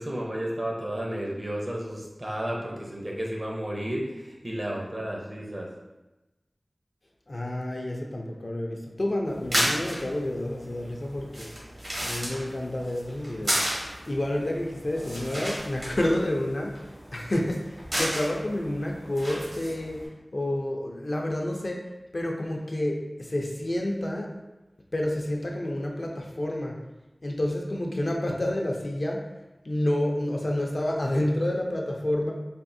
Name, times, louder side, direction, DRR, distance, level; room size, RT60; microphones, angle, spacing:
voice 1, 0.0-5.7, right 1 dB, 45° right, -2 dB, 0.6 m, -32 dB
voice 2, 7.3-11.5 12.0-16.7 17.1-17.6 18.0-20.0 20.3-21.8 22.1-24.3 24.9-26.8 27.2-29.2 29.6-32.3, left 1 dB, 55° left, 0 dB, 0.4 m, -29 dB
sound 1, 9.3-20.1, equal, 65° right, 1.0 m, -33 dB
3.4 x 2.4 x 2.6 m, 1.0 s
wide cardioid pair, 65°, 0 cm